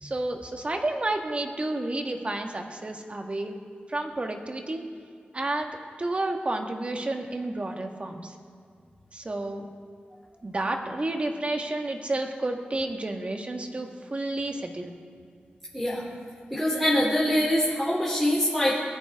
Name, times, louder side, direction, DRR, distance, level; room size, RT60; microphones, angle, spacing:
voice 1, 0.0-3.5 3.9-4.8 5.3-5.7 6.0-8.3 9.1-9.7 10.4-14.9, right 2 dB, 35° right, 3 dB, 1.6 m, -30 dB
voice 2, 15.7-16.0 16.5-18.8, equal, ahead, -6 dB, 3.0 m, -24 dB
20.5 x 14.5 x 3.6 m, 2.3 s
wide cardioid pair, 80°, 4 cm